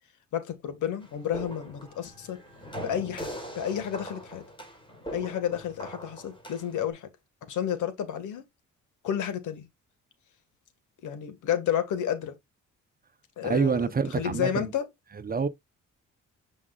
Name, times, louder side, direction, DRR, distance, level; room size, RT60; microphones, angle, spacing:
voice 1, 0.3-2.4 2.8-4.4 5.1-7.1 7.5-8.4 9.0-9.7 11.0-12.4 13.4-13.9 14.2-14.8, left 9 dB, 80° left, 1.9 m, -31 dB
sound 1, 1.0-6.9, equal, 15° left, 4.1 m, -41 dB
voice 2, 13.4-14.7 15.2-15.5, right 5 dB, 30° right, 0.9 m, -27 dB
8.1 x 5.2 x 2.5 m
cardioid pair, 90°, 30 cm